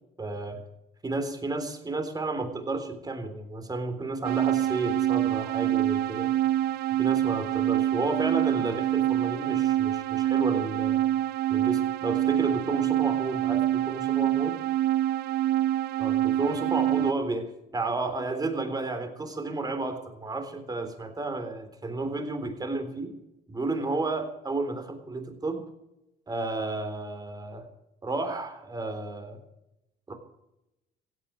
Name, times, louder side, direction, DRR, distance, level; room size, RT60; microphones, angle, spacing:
voice 1, 0.2-0.6 1.0-6.3 7.0-11.0 11.5-14.6 16.0-23.1 23.5-25.6 26.3-27.7 28.0-29.4 30.1-30.2, right 2 dB, 25° right, 7 dB, 3.7 m, -32 dB
sound 1, 4.2-17.1, right 13 dB, 70° right, 0.7 m, -26 dB
16.5 x 9.7 x 8.5 m, 0.88 s
cardioid pair, 110°, 17 cm